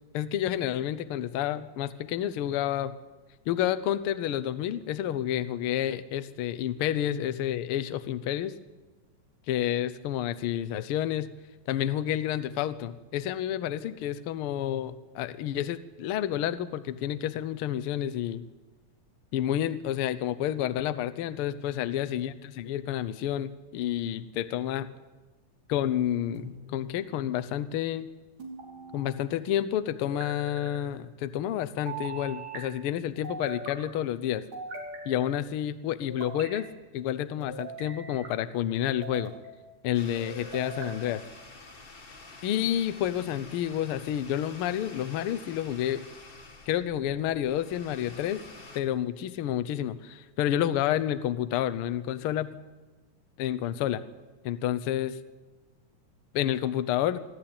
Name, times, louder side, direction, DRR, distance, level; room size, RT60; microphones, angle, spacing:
voice 1, 0.1-2.9 3.5-8.5 9.5-11.3 11.7-18.5 19.3-24.9 25.7-28.1 28.9-34.5 35.0-36.7 36.9-39.3 39.8-41.2 42.4-46.0 46.7-48.4 48.7-52.5 53.4-54.0 54.4-55.2 56.3-57.2, left 11 dB, 90° left, 13 dB, 1.2 m, -29 dB
sound 1, 26.4-27.0 28.4-29.2 30.0-30.8 31.9-32.6 33.2-33.9 34.5-35.4 36.0-36.7 37.4-38.3 38.9-39.5 40.2-41.0, right 3 dB, 75° right, 4.8 m, -41 dB
sound 2, 39.9-48.8, left 3 dB, 35° left, 0.8 m, -49 dB
25.5 x 13.0 x 8.8 m, 1.2 s
omnidirectional pair, 3.6 m